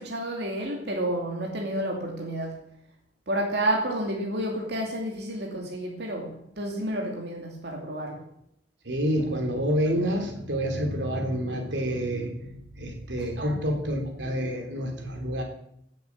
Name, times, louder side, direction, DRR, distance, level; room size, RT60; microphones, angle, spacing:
voice 1, 0.0-2.6 3.3-8.2 13.4-13.6, right 1 dB, 65° right, 0 dB, 2.5 m, -30 dB
voice 2, 8.8-15.4, equal, 90° right, 3 dB, 3.3 m, -28 dB
16.5 x 7.8 x 7.2 m, 0.74 s
head